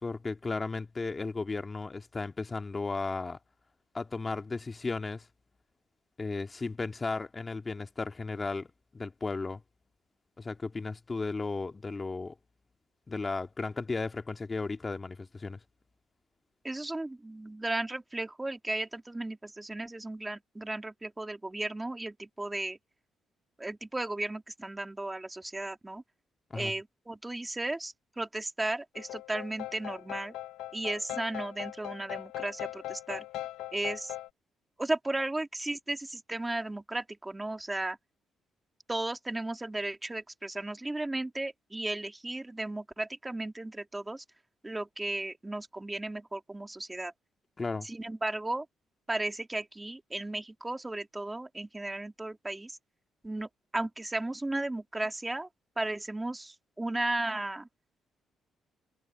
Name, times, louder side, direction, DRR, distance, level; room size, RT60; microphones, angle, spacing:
voice 1, 0.0-3.4 3.9-5.3 6.2-8.7 8.9-9.6 10.4-12.4 13.1-15.6 26.5-26.7 47.6-47.9, left 3 dB, 25° left, 1.9 m, -35 dB
voice 2, 16.6-22.8 23.6-26.0 26.5-30.3 30.7-33.3 33.7-34.1 34.8-38.0 38.9-44.2 44.6-47.1 47.8-48.7 49.1-52.8 53.2-55.5 55.8-57.7, right 2 dB, 15° right, 2.3 m, -35 dB
sound 1, 28.9-34.3, left 15 dB, 90° left, 0.6 m, -40 dB
cardioid pair, 90°, 0 cm